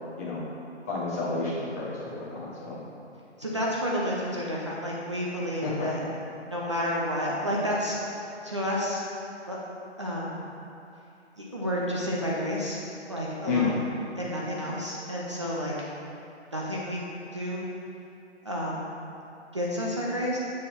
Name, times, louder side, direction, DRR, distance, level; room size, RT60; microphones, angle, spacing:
voice 1, 0.9-2.8 5.6-5.9 13.5-13.7, left 4 dB, 15° left, -7 dB, 0.8 m, -30 dB
voice 2, 3.4-6.0 6.4-8.0 8.4-9.1 9.5-9.6 10.0-10.4 11.4-13.8 14.2-15.7 16.5-17.0 17.3-17.7 18.4-18.9 19.5-20.4, equal, 25° right, -5 dB, 0.5 m, -30 dB
7.1 x 4.0 x 4.5 m, 2.7 s
figure-of-eight pair, 140°, 35 cm